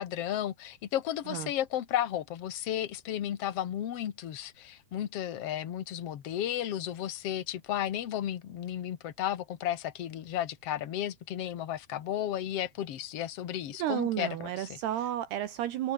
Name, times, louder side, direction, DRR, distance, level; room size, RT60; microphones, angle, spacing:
voice 1, 0.0-14.8, left 11 dB, 70° left, 1.4 m, -33 dB
voice 2, 13.8-15.9, right 12 dB, 70° right, 3.2 m, -32 dB
omnidirectional pair, 5.0 m